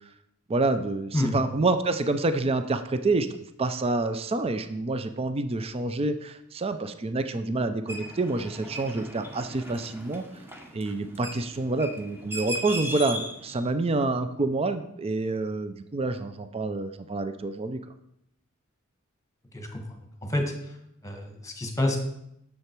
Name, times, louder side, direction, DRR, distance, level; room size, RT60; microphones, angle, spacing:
voice 1, 0.5-3.3 3.6-10.2 10.7-17.8, right 2 dB, 30° right, 9 dB, 0.5 m, -27 dB
sound 1, 7.9-13.6, right 1 dB, 10° right, 1.1 m, -38 dB
voice 2, 21.0-22.0, left 1 dB, 15° left, 4 dB, 1.4 m, -28 dB
9.8 x 6.8 x 4.5 m, 0.78 s
head